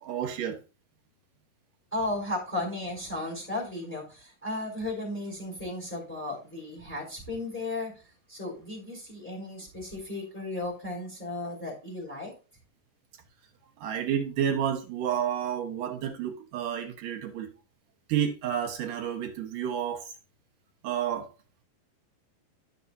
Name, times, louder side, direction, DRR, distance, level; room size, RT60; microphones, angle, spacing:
voice 1, 0.0-0.6 13.8-17.5 18.1-20.1 20.8-21.3, right 9 dB, 65° right, 2.4 m, -30 dB
voice 2, 1.9-7.9 8.3-12.3, left 2 dB, 5° left, 3.5 m, -35 dB
12.5 x 5.9 x 2.7 m
omnidirectional pair, 4.8 m